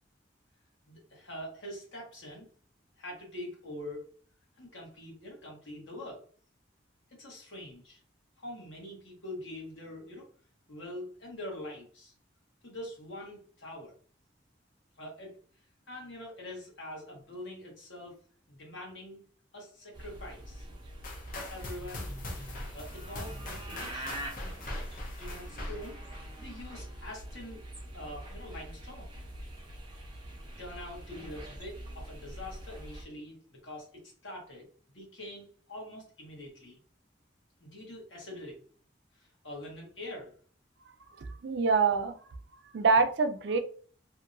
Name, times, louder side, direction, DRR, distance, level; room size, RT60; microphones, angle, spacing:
voice 1, 0.9-2.5 3.0-4.1 4.6-6.2 7.2-8.0 8.4-10.3 10.7-12.1 12.6-13.9 15.0-15.3 15.9-18.2 18.5-19.2 19.5-20.7 21.3-22.1 22.7-24.2 25.2-26.0 26.4-27.6 27.9-29.1 30.6-36.8 37.6-38.6 39.4-40.3, left 1 dB, 75° left, -2 dB, 1.3 m, -44 dB
sound 1, 19.9-33.0, right 1 dB, 25° right, 0.7 m, -44 dB
sound 2, 21.0-26.9, left 2 dB, 45° left, 0.7 m, -42 dB
voice 2, 41.2-42.2 42.7-43.6, right 4 dB, 65° right, 8 dB, 0.4 m, -25 dB
2.8 x 2.6 x 2.6 m, 0.44 s
head